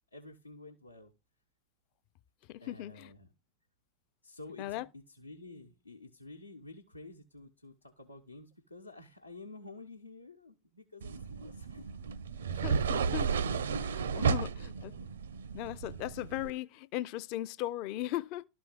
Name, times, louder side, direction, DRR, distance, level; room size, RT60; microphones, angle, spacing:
voice 1, 0.1-1.1 2.6-3.3 4.2-12.1 14.1-15.1, left 2 dB, 85° left, 1.1 m, -51 dB
voice 2, 2.5-3.1 4.6-4.8 12.6-13.3 13.8-14.9 15.5-18.5, left 15 dB, 45° left, 0.5 m, -38 dB
sound 1, 11.0-16.5, right 6 dB, 65° right, 0.6 m, -33 dB
12.5 x 4.4 x 6.1 m
figure-of-eight pair, 90°, 0 cm